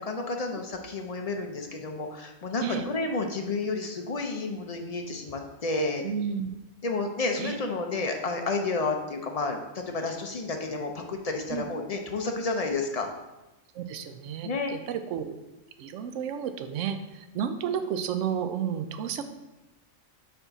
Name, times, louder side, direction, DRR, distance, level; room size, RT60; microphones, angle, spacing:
voice 1, 0.0-6.0 6.8-13.1 14.4-14.7, left 3 dB, 50° left, 3 dB, 0.4 m, -31 dB
voice 2, 6.0-6.5 7.4-7.6 11.5-11.6 13.7-15.4 15.8-19.2, right 8 dB, 75° right, 8 dB, 0.9 m, -32 dB
5.8 x 4.4 x 4.0 m, 1.0 s
omnidirectional pair, 1.3 m